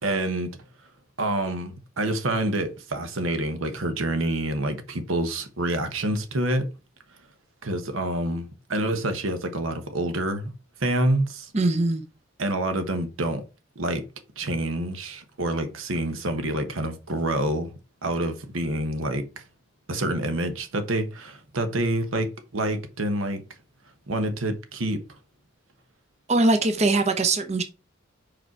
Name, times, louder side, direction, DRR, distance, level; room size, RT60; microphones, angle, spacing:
voice 1, 0.0-0.5 1.2-6.7 7.6-10.5 10.8-11.5 12.4-13.4 13.8-14.0 14.4-17.7 18.0-19.4 19.9-23.4 24.1-25.0, right 1 dB, 80° right, 1.1 m, -27 dB
voice 2, 11.5-12.0 26.3-27.6, right 2 dB, 35° right, 0.7 m, -21 dB
5.1 x 4.4 x 4.5 m
head